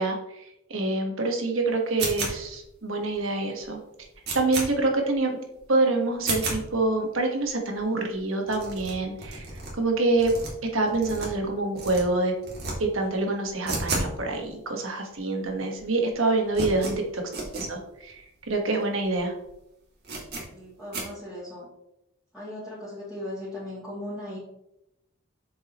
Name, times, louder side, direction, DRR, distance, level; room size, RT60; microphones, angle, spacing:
voice 1, 0.0-3.8 4.3-5.4 5.7-10.3 10.7-12.3 12.8-17.2 17.5-19.3, right 2 dB, 70° right, 2 dB, 1.5 m, -26 dB
sound 1, 2.0-2.6 3.1-3.2 3.6-3.7 3.9-4.7 5.1-5.2 5.5-5.7 6.1-6.6 7.1-7.2 7.4-7.5 7.7-7.8 8.1-8.2 8.4-9.7 10.1-11.5 11.7-12.0 12.4-12.7 13.0-14.1 14.4-14.5 15.1-15.2 15.4-15.8 16.0-17.7 18.1-18.2 18.4-18.5 19.0-19.2 19.4-19.5 20.0-20.4 20.9-21.0, right 3 dB, 50° right, 2.4 m, -32 dB
voice 2, 20.5-21.7 22.3-24.4, left 1 dB, 5° right, -13 dB, 2.7 m, -37 dB
7.4 x 7.2 x 3.1 m, 0.85 s
head